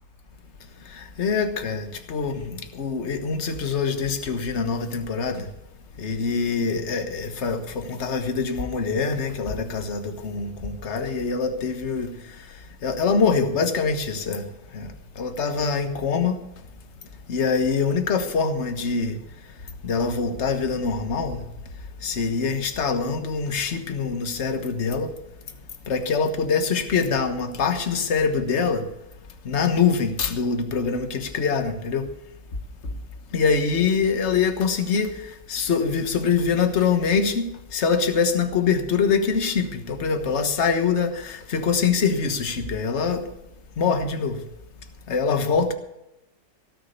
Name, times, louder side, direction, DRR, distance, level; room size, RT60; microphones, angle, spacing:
voice 1, 0.9-5.5 6.0-12.1 12.8-14.5 14.7-14.9 15.2-16.4 17.3-19.2 19.8-21.4 22.0-25.1 25.9-28.8 29.4-32.1 33.3-35.2 35.5-37.4 37.7-43.3 43.8-44.4 45.1-45.7, left 5 dB, 40° left, 1.5 m, -24 dB
17.5 x 6.7 x 8.2 m
omnidirectional pair, 1.9 m